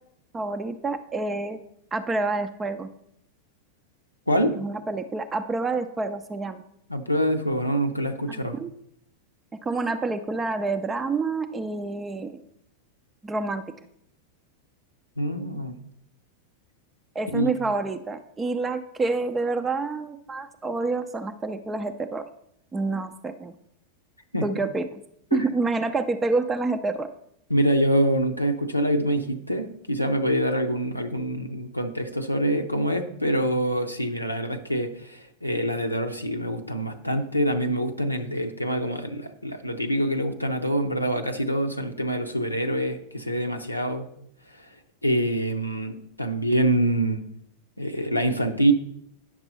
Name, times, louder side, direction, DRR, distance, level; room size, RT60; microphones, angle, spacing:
voice 1, 0.3-1.6 1.9-2.9 4.6-6.6 8.3-8.7 9.6-12.4 13.2-13.6 17.1-22.2 22.7-23.5 24.4-24.8 25.3-27.1, right 3 dB, 15° right, 7 dB, 0.5 m, -28 dB
voice 2, 4.3-4.6 6.9-8.6 15.2-15.8 17.3-17.5 24.3-24.5 25.3-25.5 27.5-44.1 44.5-44.7 45.0-47.2 47.8-48.7, right 1 dB, 90° left, 4 dB, 0.6 m, -25 dB
9.8 x 6.1 x 4.0 m, 0.72 s
figure-of-eight pair, 90°, 0 cm